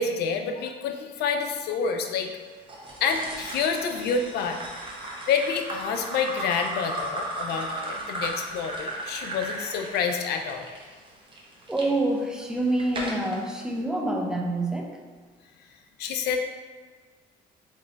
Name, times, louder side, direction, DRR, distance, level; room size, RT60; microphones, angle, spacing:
voice 1, 0.0-2.3 3.0-4.6 5.3-10.7 16.0-16.4, left 5 dB, 75° left, 5 dB, 0.5 m, -28 dB
sound 1, 2.7-11.9 12.4-13.4, right 1 dB, 30° right, 0.9 m, -35 dB
voice 2, 11.7-14.9, right 1 dB, 5° right, 0 dB, 0.6 m, -27 dB
3.7 x 3.1 x 3.9 m, 1.5 s
cardioid pair, 110°, 17 cm